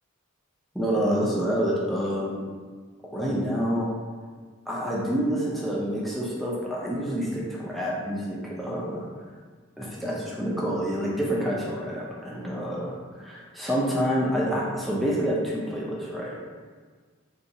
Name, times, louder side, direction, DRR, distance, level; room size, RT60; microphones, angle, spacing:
voice 1, 0.7-2.4 3.1-3.9 4.7-9.1 9.8-16.4, equal, ahead, -5 dB, 0.4 m, -28 dB
3.9 x 2.3 x 2.6 m, 1.5 s
head